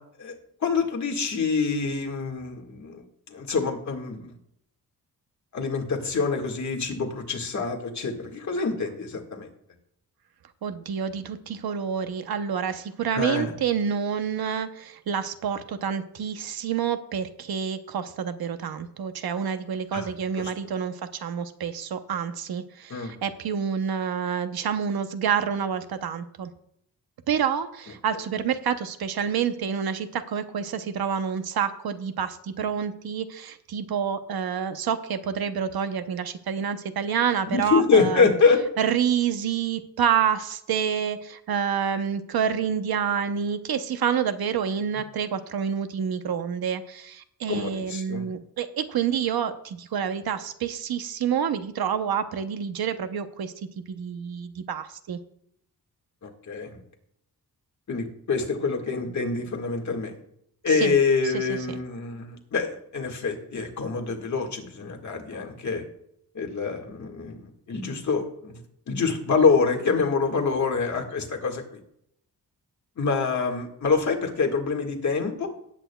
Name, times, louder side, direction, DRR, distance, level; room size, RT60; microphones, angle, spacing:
voice 1, 0.2-4.3 5.5-9.5 13.1-13.5 19.9-20.1 20.4-20.5 22.9-23.1 37.5-38.6 47.5-48.3 56.2-56.8 57.9-60.1 60.6-65.8 66.3-68.6 68.9-71.8 73.0-75.5, left 4 dB, 50° left, 3 dB, 1.9 m, -26 dB
voice 2, 10.6-26.5 27.3-38.3 38.8-53.5 53.9-55.2 60.7-60.9 61.2-61.4, right 7 dB, 75° right, 9 dB, 0.9 m, -28 dB
18.0 x 8.7 x 2.3 m, 0.73 s
wide cardioid pair, 160°, 38 cm